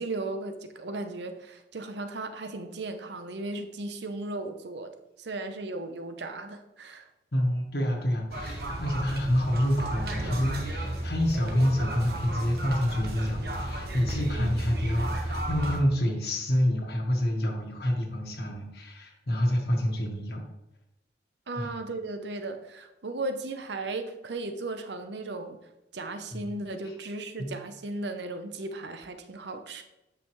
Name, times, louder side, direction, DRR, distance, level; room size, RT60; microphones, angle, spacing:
voice 1, 0.0-4.9 5.2-7.1 14.3-14.6 21.5-25.6 25.9-29.8, right 2 dB, 70° right, 8 dB, 0.8 m, -36 dB
voice 2, 7.3-20.4 21.5-21.7 26.3-26.5 26.8-26.9 27.4-27.5, equal, 60° left, -1 dB, 1.5 m, -28 dB
sound 1, 8.3-15.8, right 1 dB, 55° right, 1.2 m, -33 dB
9.2 x 5.6 x 3.2 m, 0.92 s
head